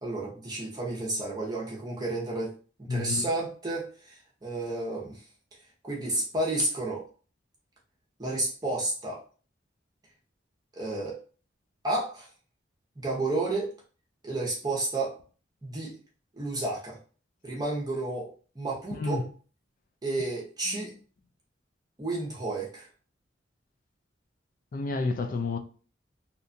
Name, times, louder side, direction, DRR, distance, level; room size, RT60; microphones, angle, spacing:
voice 1, 0.0-2.5 2.9-5.2 5.8-7.0 8.2-9.2 10.8-11.2 11.8-12.3 13.0-13.7 14.2-15.1 15.6-15.9 16.3-17.0 17.4-19.2 20.0-20.9 22.0-22.9, right 2 dB, 20° right, 0.7 m, -31 dB
voice 2, 2.9-3.3 18.9-19.3 20.7-20.8 24.7-25.6, left 3 dB, 45° left, 0.3 m, -30 dB
2.8 x 2.2 x 2.6 m
head